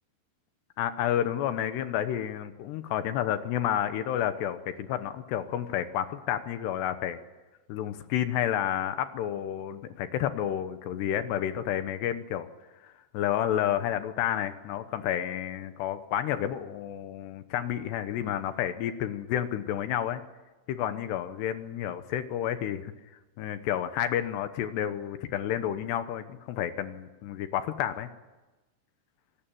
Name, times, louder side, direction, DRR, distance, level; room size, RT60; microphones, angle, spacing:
voice 1, 0.8-7.2 7.7-12.5 12.7-20.2 20.7-22.9 23.4-28.1, left 10 dB, 75° left, 10 dB, 2.9 m, -30 dB
25.5 x 18.5 x 9.1 m, 1.2 s
omnidirectional pair, 5.4 m